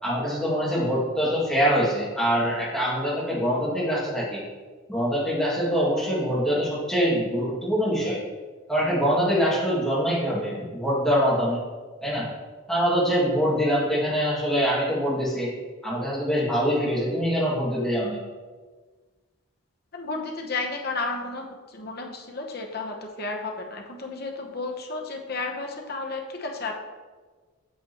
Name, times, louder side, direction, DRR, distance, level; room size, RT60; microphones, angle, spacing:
voice 1, 0.0-4.4 4.9-8.2 8.7-11.6 12.0-12.3 12.7-15.5 15.8-18.2, equal, 5° left, -8 dB, 2.3 m, -24 dB
voice 2, 19.9-26.7, left 3 dB, 50° left, 2 dB, 1.0 m, -32 dB
8.0 x 6.7 x 3.0 m, 1.4 s
head